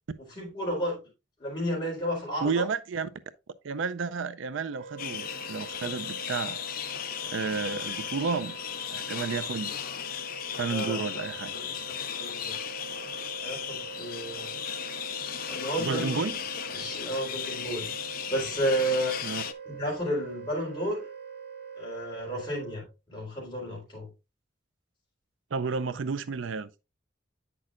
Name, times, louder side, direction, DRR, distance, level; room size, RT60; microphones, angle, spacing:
voice 1, 0.4-1.0 1.4-2.7 10.7-11.2 11.5-12.5 13.4-14.5 15.5-16.3 16.7-17.8 18.3-19.1 19.6-21.0 21.8-22.8 23.1-24.1, equal, 25° left, 4.2 m, -32 dB
voice 2, 2.4-3.1 3.6-6.6 7.3-8.6 8.9-9.7 10.6-11.5 15.8-16.4 19.2-19.4 25.5-26.7, right 5 dB, 80° right, 0.4 m, -31 dB
Wind instrument woodwind instrument, 4.7-22.9, right 6 dB, 60° right, 2.1 m, -44 dB
sound 1, 5.0-19.5, left 9 dB, 45° left, 0.4 m, -36 dB
8.8 x 6.1 x 2.5 m
head